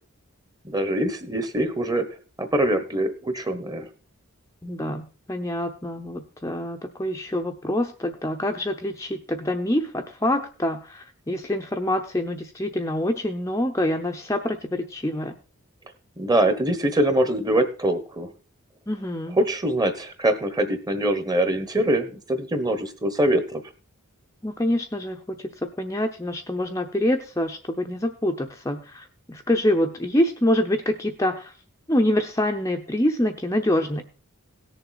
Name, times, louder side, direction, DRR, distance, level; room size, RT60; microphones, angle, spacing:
voice 1, 0.6-2.1 2.4-3.9 16.2-18.3 19.4-23.6, right 1 dB, 15° right, 9 dB, 1.2 m, -23 dB
voice 2, 4.6-15.3 18.9-19.4 24.4-25.5 25.8-31.5 31.9-34.0, left 1 dB, 15° left, 4 dB, 0.7 m, -26 dB
17.0 x 7.0 x 4.1 m, 0.36 s
head